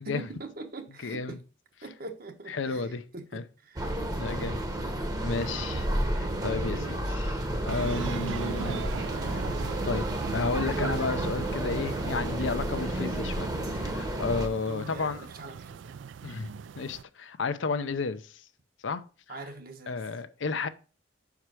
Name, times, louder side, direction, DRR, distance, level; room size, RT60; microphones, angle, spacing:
voice 1, 0.0-1.4 1.8-3.9 6.4-6.9 14.7-15.9 19.3-20.0, right 2 dB, 50° right, 1.0 m, -42 dB
voice 2, 1.0-1.4 2.5-3.0 3.3-3.4 4.2-4.6 5.2-8.9 9.3-9.4 9.9-10.1 10.3-15.3 16.2-18.4 18.8-19.0 19.3-19.4 19.9-20.7, left 4 dB, 80° left, 0.6 m, -32 dB
sound 1, 3.8-14.5, right 1 dB, 20° right, 0.9 m, -31 dB
sound 2, 7.6-17.0, right 7 dB, 75° right, 0.3 m, -39 dB
5.6 x 4.8 x 6.1 m
head